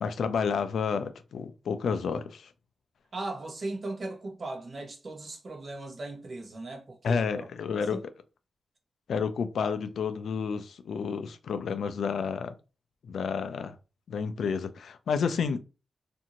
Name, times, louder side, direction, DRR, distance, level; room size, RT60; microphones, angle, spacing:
voice 1, 0.0-2.5 7.0-8.1 9.1-12.5 13.0-13.8 14.1-15.6, left 6 dB, 90° left, 0.3 m, -30 dB
voice 2, 3.1-7.5 7.9-8.0 9.6-9.7, right 2 dB, 45° right, 0.8 m, -38 dB
2.6 x 2.5 x 2.8 m
wide cardioid pair, 125°, 0 cm